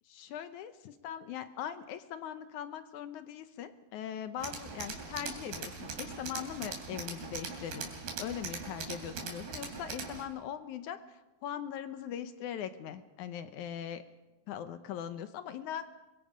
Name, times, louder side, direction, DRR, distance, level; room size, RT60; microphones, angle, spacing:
voice 1, 0.1-7.9 8.2-14.0 14.5-15.9, left 9 dB, 70° left, 10 dB, 1.9 m, -40 dB
Tools, 4.4-10.2, right 5 dB, 85° right, 4.8 m, -41 dB
24.5 x 22.5 x 5.1 m, 1.1 s
omnidirectional pair, 4.2 m